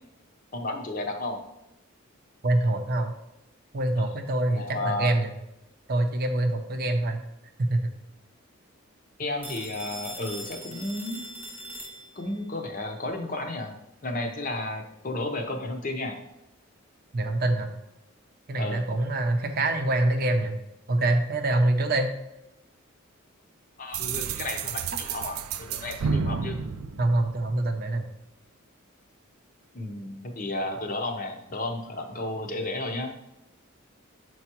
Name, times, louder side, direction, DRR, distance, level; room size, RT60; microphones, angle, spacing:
voice 1, 0.5-1.4 4.0-4.1 4.5-5.1 9.2-11.3 12.2-13.8 14.0-16.2 18.6-18.8 23.8-26.6 29.7-33.1, left 2 dB, 40° left, 4 dB, 0.7 m, -33 dB
voice 2, 2.4-3.1 3.7-5.3 5.9-7.2 7.6-7.9 17.1-17.7 18.5-20.6 20.9-22.1 27.0-28.1, right 2 dB, 45° right, 5 dB, 0.6 m, -25 dB
Telephone, 9.4-12.4, equal, 10° right, 0.9 m, -41 dB
sound 1, 23.9-27.8, right 5 dB, 85° right, 0.4 m, -31 dB
7.0 x 4.6 x 3.0 m, 0.89 s
head